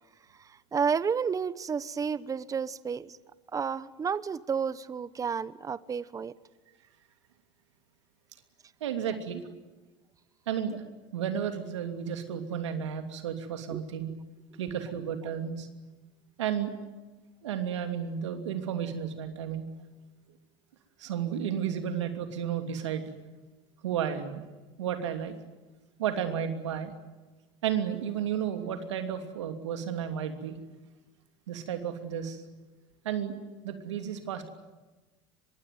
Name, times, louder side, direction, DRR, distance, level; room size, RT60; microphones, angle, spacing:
voice 1, 0.4-3.2 3.5-6.3 13.7-13.8, right 6 dB, 25° right, 17 dB, 1.0 m, -31 dB
voice 2, 8.8-9.4 10.5-10.8 11.1-14.1 14.6-15.7 16.4-16.7 17.4-19.7 21.0-23.1 23.8-24.4 24.8-25.3 26.0-26.9 27.6-30.6 31.5-32.4 33.0-33.3 33.6-34.5, right 8 dB, 85° right, 7 dB, 3.0 m, -32 dB
24.5 x 21.5 x 9.4 m, 1.2 s
hypercardioid pair, 95°, 15 cm